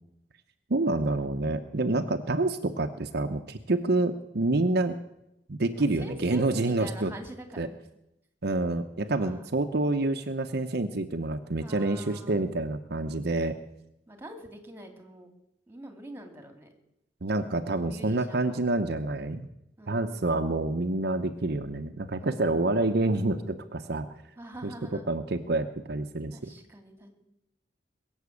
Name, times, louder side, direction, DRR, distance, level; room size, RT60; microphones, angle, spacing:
voice 1, 0.7-5.0 5.5-7.1 7.6-7.7 8.4-13.6 17.2-19.5 19.9-24.1 24.6-24.7 25.1-26.4, right 2 dB, 60° right, 7 dB, 0.8 m, -28 dB
voice 2, 5.8-7.8 9.1-9.4 11.6-12.5 14.1-15.3 15.7-16.7 17.8-18.6 19.8-20.2 22.2-22.8 24.4-25.1 26.3-27.1, right 1 dB, 15° right, 5 dB, 2.4 m, -45 dB
21.5 x 7.3 x 8.4 m, 0.86 s
head